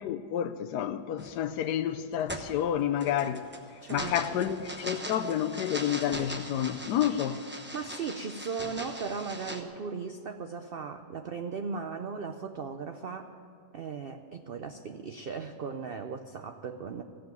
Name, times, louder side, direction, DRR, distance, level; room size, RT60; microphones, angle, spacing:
voice 1, 0.0-3.4 3.9-7.4, left 10 dB, 85° left, 1.2 m, -29 dB
sound 1, 1.2-1.5 2.0-9.6, equal, 10° right, 0.7 m, -40 dB
voice 2, 3.8-4.5 7.7-13.4 13.7-17.0, right 5 dB, 65° right, 0.5 m, -37 dB
15.5 x 7.7 x 9.2 m
omnidirectional pair, 1.7 m